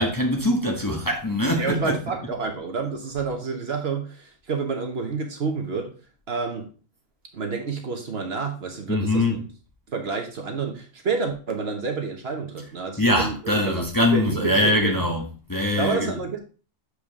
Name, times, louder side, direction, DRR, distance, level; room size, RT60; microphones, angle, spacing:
voice 1, 0.0-2.4 8.9-9.5 13.0-16.1, left 1 dB, 15° left, 1.0 m, -23 dB
voice 2, 1.6-5.9 6.3-6.7 7.3-9.4 9.9-13.8 14.1-15.0 15.8-16.4, right 4 dB, 55° right, 1.3 m, -29 dB
6.9 x 4.9 x 3.6 m
omnidirectional pair, 1.3 m